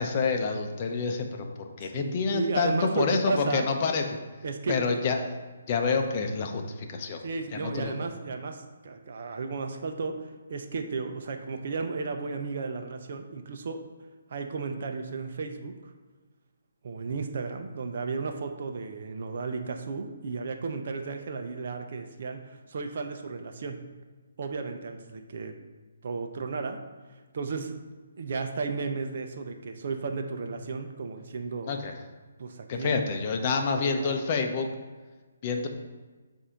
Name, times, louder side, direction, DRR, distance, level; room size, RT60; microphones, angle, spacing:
voice 1, 0.0-4.0 4.7-5.3 5.7-7.2 7.5-7.9 31.6-31.9 32.7-34.7 35.4-35.7, left 4 dB, 35° left, 4 dB, 0.7 m, -28 dB
voice 2, 1.8-3.7 4.4-5.0 7.2-13.8 14.3-15.7 16.8-23.8 24.4-25.5 26.0-26.8 27.3-27.8 28.2-31.7 32.4-32.9 33.7-34.2, right 4 dB, 55° right, 5 dB, 0.7 m, -34 dB
7.1 x 2.7 x 5.1 m, 1.3 s
hypercardioid pair, 160°, 0 cm